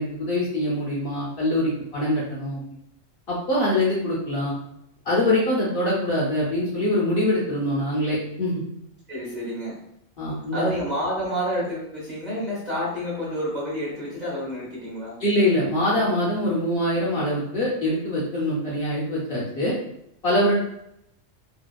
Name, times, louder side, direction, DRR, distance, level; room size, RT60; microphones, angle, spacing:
voice 1, 0.0-2.6 3.3-4.5 5.0-8.6 10.2-10.7 15.2-19.7 20.2-20.6, left 1 dB, 55° left, -6 dB, 0.8 m, -24 dB
voice 2, 9.1-9.8 10.5-15.1, equal, 40° right, -7 dB, 0.9 m, -29 dB
2.6 x 2.3 x 2.2 m, 0.78 s
omnidirectional pair, 1.4 m